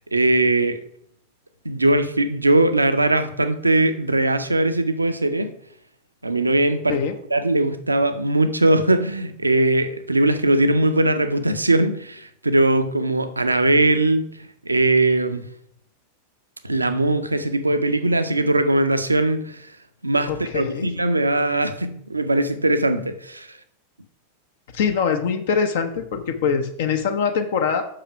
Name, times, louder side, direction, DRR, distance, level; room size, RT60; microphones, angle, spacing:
voice 1, 0.1-0.8 1.6-5.5 6.2-7.0 7.3-14.3 14.6-15.4 16.6-19.5 20.0-23.5, right 2 dB, 80° right, 0.6 m, -20 dB
voice 2, 20.3-20.9 24.7-27.8, left 6 dB, 55° left, 0.7 m, -23 dB
5.7 x 5.0 x 5.7 m
figure-of-eight pair, 90°, 0 cm